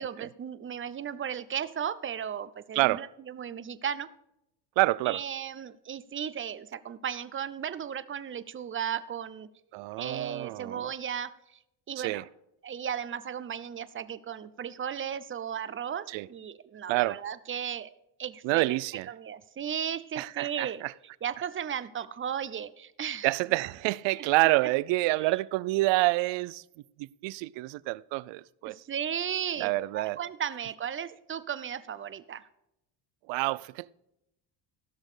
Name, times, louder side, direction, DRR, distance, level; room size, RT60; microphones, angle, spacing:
voice 1, 0.0-4.1 5.1-9.5 10.0-11.6 11.9-12.2 12.6-17.9 18.2-18.8 19.1-20.8 21.2-23.3 24.2-24.3 25.2-25.4 28.7-32.4, right 8 dB, 25° right, 0.7 m, -35 dB
voice 2, 2.7-3.1 4.8-5.2 9.7-10.9 12.0-12.3 16.1-16.3 16.9-17.2 18.4-19.1 20.2-20.9 23.2-26.6 27.0-28.8 29.6-30.2 33.3-33.9, right 21 dB, 65° right, 0.6 m, -28 dB
16.5 x 6.4 x 4.9 m
cardioid pair, 110°, 49 cm